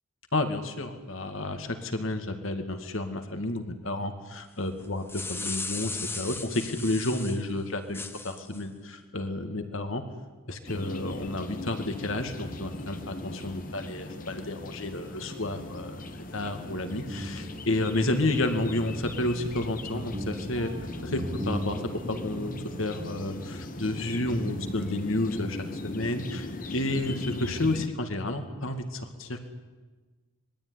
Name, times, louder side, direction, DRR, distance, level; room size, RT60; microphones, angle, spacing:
voice 1, 0.3-10.0 10.5-16.0 16.3-20.7 21.0-21.8 22.1-29.5, left 2 dB, 75° left, 7 dB, 2.3 m, -31 dB
sound 1, 4.8-7.4 7.9-8.6, left 3 dB, 10° left, 1.0 m, -36 dB
sound 2, 10.6-27.9, left 1 dB, 40° left, 1.5 m, -39 dB
Guitar, 16.5-25.0, equal, 35° right, 3.5 m, -39 dB
26.0 x 21.0 x 9.8 m, 1.3 s
head